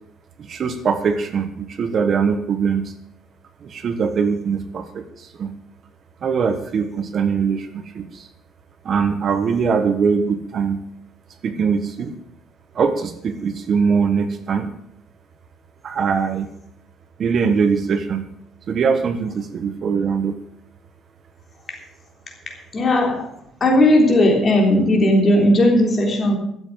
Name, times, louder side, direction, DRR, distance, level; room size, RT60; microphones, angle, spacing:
voice 1, 0.4-2.9 3.6-5.5 6.2-8.3 8.8-10.8 11.4-12.1 12.7-14.7 15.8-16.5 17.2-18.2 18.7-20.4, right 6 dB, 45° right, 9 dB, 1.2 m, -22 dB
voice 2, 22.7-23.3 23.6-26.4, left 1 dB, 35° left, 2 dB, 3.4 m, -16 dB
13.0 x 7.8 x 7.6 m, 0.72 s
cardioid pair, 130°, 0 cm